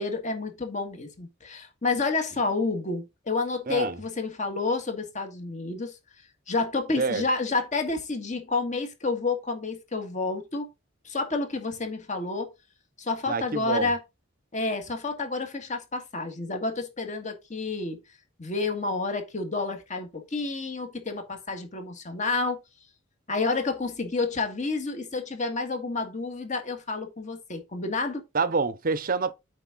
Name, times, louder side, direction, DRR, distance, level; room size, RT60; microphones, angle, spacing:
voice 1, 0.0-5.9 6.5-10.7 11.1-12.5 13.0-14.0 14.5-18.0 18.4-22.6 23.3-28.2, left 3 dB, 40° left, 1.8 m, -29 dB
voice 2, 3.7-4.0 7.0-7.3 13.3-13.9 28.3-29.3, right 4 dB, 45° right, 0.7 m, -27 dB
8.3 x 4.8 x 3.9 m
head